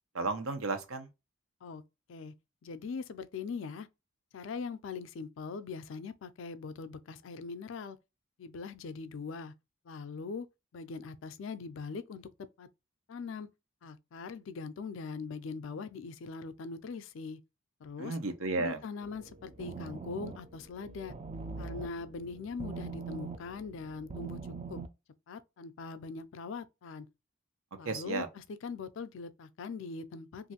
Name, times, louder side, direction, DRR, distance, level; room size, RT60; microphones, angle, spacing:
voice 1, 0.1-1.1 18.0-18.8 27.8-28.3, right 3 dB, 90° right, 0.7 m, -33 dB
voice 2, 2.6-3.9 4.3-8.0 8.4-9.5 9.8-10.5 10.7-12.7 13.1-13.5 13.8-17.4 17.8-18.2 18.6-21.2 21.6-24.8 25.3-27.1 27.8-30.5, left 4 dB, 70° left, 0.4 m, -41 dB
sound 1, 19.0-24.9, right 4 dB, 30° right, 0.3 m, -43 dB
3.1 x 2.5 x 2.7 m
head